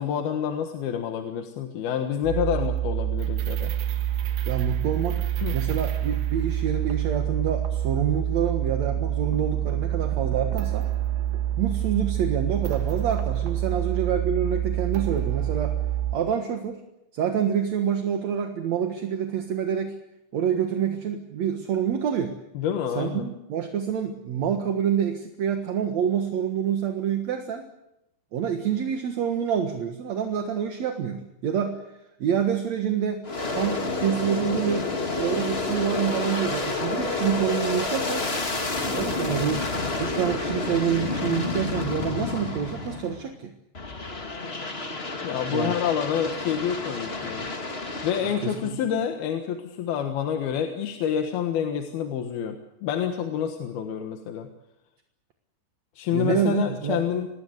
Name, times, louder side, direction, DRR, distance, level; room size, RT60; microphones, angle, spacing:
voice 1, 0.0-3.7 5.4-5.6 22.5-23.3 45.2-47.5 48.0-54.5 56.0-57.3, left 8 dB, 70° left, 5 dB, 3.2 m, -28 dB
sound 1, 2.2-16.2, right 11 dB, 75° right, 3.3 m, -27 dB
voice 2, 4.5-10.9 11.6-15.8 16.1-16.8 17.1-20.0 20.3-22.4 23.0-27.7 28.3-31.8 32.2-38.2 38.8-39.7 40.0-43.5 45.5-45.8 48.2-48.7 56.1-57.0, right 8 dB, 55° right, 5 dB, 2.2 m, -27 dB
Aircraft, 33.2-43.3 43.7-48.7, left 3 dB, 30° left, 1.1 m, -29 dB
26.5 x 19.5 x 8.1 m, 0.88 s
omnidirectional pair, 4.7 m